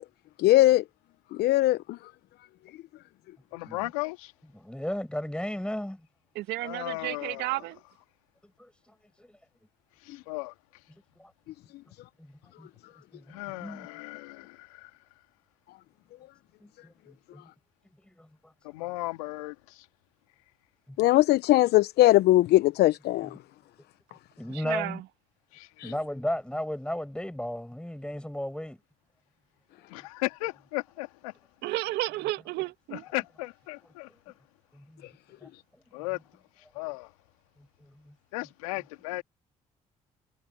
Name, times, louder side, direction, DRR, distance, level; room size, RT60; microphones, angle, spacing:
voice 1, 0.4-0.8 1.3-2.0 21.0-23.4 25.8-25.9, left 16 dB, 70° left, 0.9 m, -20 dB
voice 2, 3.5-4.3 6.6-7.6 10.0-10.5 13.3-14.9 18.6-19.9 25.5-26.0 29.9-31.3 32.9-34.1 35.9-36.2 36.7-37.1 38.3-39.2, left 22 dB, 85° left, 2.2 m, -36 dB
voice 3, 4.5-6.0 8.6-8.7 9.2-9.3 11.2-11.3 12.2-12.3 12.6-12.7 13.1-13.9 16.6-17.4 18.2-18.3 24.4-25.0 25.8-28.8 34.7-35.0 35.4-35.5 38.1-38.2, left 1 dB, 5° left, 5.8 m, -34 dB
voice 4, 6.4-7.8 24.5-25.0 31.6-33.0, right 17 dB, 75° right, 2.1 m, -32 dB
hypercardioid pair, 50°, 17 cm